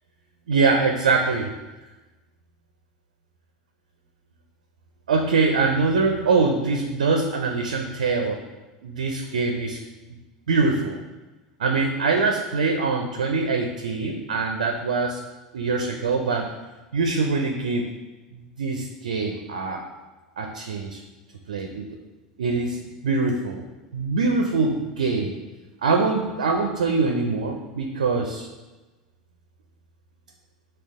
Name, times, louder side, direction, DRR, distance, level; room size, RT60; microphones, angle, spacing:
voice 1, 0.5-1.5 5.1-8.4 8.8-9.8 10.5-11.0 11.6-15.2 15.5-16.5 16.9-17.9 18.3-19.8 20.4-21.0 21.5-21.9 22.4-23.6 23.9-25.3 25.8-28.5, right 4 dB, 80° right, 2 dB, 0.4 m, -23 dB
6.2 x 2.3 x 3.5 m, 1.2 s
hypercardioid pair, 80°, 4 cm